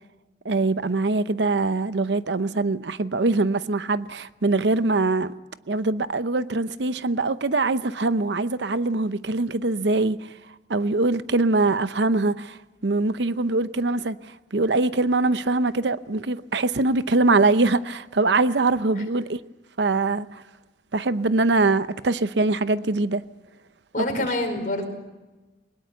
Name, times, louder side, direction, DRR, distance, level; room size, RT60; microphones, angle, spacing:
voice 1, 0.4-5.3 5.7-10.3 10.7-19.4 19.8-20.4 20.9-23.2 24.0-24.2, right 3 dB, 85° right, 0.8 m, -23 dB
voice 2, 23.9-24.9, left 2 dB, 50° left, 4.9 m, -26 dB
22.0 x 20.5 x 6.9 m
head